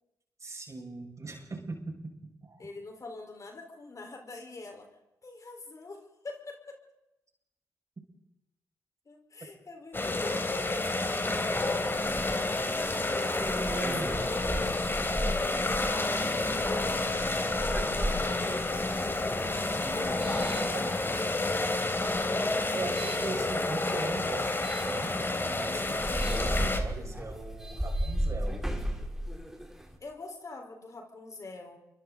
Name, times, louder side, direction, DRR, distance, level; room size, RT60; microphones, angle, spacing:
voice 1, 0.4-2.7 13.4-14.9 19.5-21.7 22.7-28.7, right 3 dB, 40° right, 1 dB, 6.4 m, -40 dB
voice 2, 2.6-4.9 5.2-6.8 9.1-11.0 12.1-14.3 15.9-19.8 30.0-31.8, left 3 dB, 40° left, 3 dB, 4.5 m, -44 dB
sound 1, 9.9-26.8, left 2 dB, 25° left, 3.2 m, -30 dB
sound 2, 11.3-21.4 22.0-23.3 24.6-24.9 25.4-25.5 25.8-30.0, equal, 5° right, 3.8 m, -36 dB
29.0 x 23.5 x 4.1 m, 0.91 s
hypercardioid pair, 40°, 8 cm